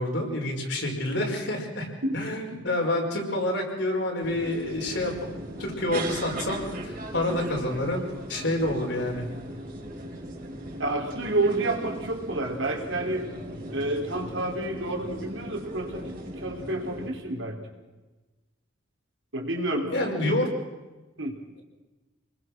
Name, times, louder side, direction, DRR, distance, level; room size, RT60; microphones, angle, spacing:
voice 1, 0.0-1.9 2.1-5.1 5.6-9.2 19.9-20.5, left 1 dB, 65° left, 1 dB, 5.5 m, -28 dB
Tram Ride Amb Indoor Istanbul Turkey, 4.2-17.1, right 1 dB, 45° right, 5.1 m, -38 dB
voice 2, 10.8-13.3 13.7-17.6 19.3-20.0 21.2-21.4, right 2 dB, 75° right, 2 dB, 4.2 m, -29 dB
28.5 x 21.0 x 6.3 m, 1.2 s
head